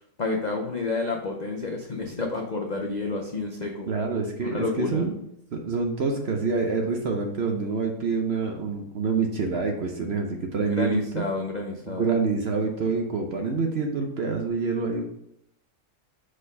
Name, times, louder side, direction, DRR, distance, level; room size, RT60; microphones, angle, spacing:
voice 1, 0.2-3.9 4.4-5.1 10.6-12.1, left 3 dB, 55° left, 1 dB, 0.4 m, -30 dB
voice 2, 3.9-5.1 5.5-11.2 11.9-15.0, right 4 dB, 55° right, 3 dB, 0.8 m, -27 dB
5.1 x 4.2 x 5.3 m, 0.77 s
omnidirectional pair, 1.7 m